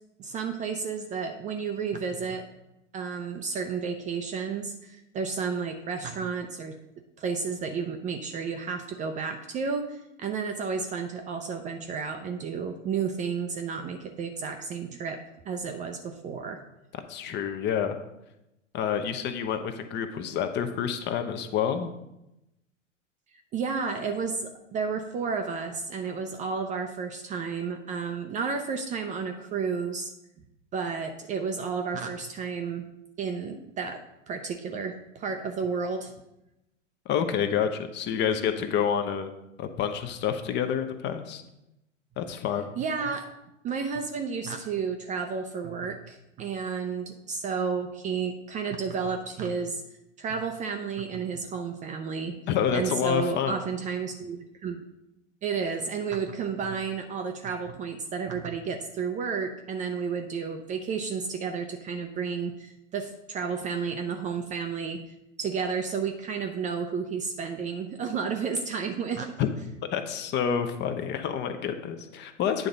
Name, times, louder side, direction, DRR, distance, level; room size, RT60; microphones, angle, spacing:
voice 1, 0.2-2.4 2.9-6.8 7.2-15.2 15.5-16.6 23.5-30.1 30.7-32.9 33.2-34.0 34.3-36.1 42.8-43.2 43.6-49.8 50.2-52.4 52.7-54.9 55.4-65.0 65.4-69.3, right 5 dB, 20° right, 5 dB, 0.5 m, -32 dB
voice 2, 17.1-18.0 18.7-21.9 37.1-39.3 39.6-41.4 42.2-42.7 52.5-53.6 69.4-69.5 69.9-72.7, left 8 dB, 30° left, 8 dB, 0.7 m, -28 dB
9.1 x 3.8 x 5.4 m, 0.89 s
hypercardioid pair, 100°, 38 cm